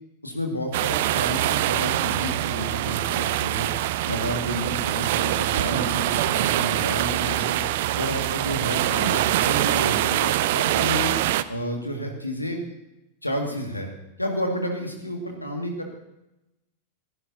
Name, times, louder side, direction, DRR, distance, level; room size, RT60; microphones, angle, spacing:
voice 1, 0.2-3.7 4.1-7.6 8.0-11.1 11.5-12.6 13.2-13.9 14.2-15.9, equal, 85° left, 2 dB, 2.1 m, -30 dB
sound 1, 0.7-11.4, right 14 dB, 50° right, 0.5 m, -24 dB
16.0 x 15.0 x 2.8 m, 0.93 s
figure-of-eight pair, 90°, 0 cm